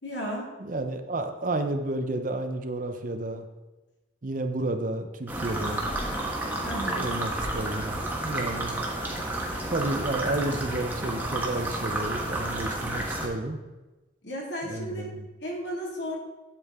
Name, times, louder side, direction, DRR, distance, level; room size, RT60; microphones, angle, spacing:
voice 1, 0.0-0.5 6.6-7.0 14.2-15.1 15.4-16.2, equal, 70° left, -1 dB, 2.2 m, -33 dB
voice 2, 0.6-3.5 4.2-5.9 6.8-8.8 9.7-13.6 14.7-15.2, right 2 dB, 45° right, 7 dB, 0.7 m, -31 dB
sound 1, 5.3-13.3, right 1 dB, 10° right, 1.2 m, -31 dB
8.5 x 8.2 x 3.6 m, 1.1 s
head